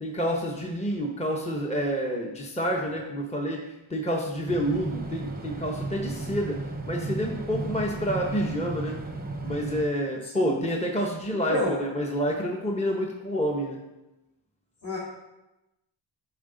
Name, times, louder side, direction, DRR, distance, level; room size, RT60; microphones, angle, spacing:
voice 1, 0.0-3.6 3.9-6.6 6.9-8.9 9.4-13.8, equal, 15° left, 0 dB, 1.0 m, -28 dB
sound 1, 4.5-9.8, right 3 dB, 20° right, 0.7 m, -34 dB
voice 2, 10.4-10.7 11.5-11.8 14.8-15.0, left 1 dB, 40° left, -7 dB, 2.1 m, -28 dB
7.8 x 4.9 x 3.9 m, 0.98 s
wide cardioid pair, 60°, 47 cm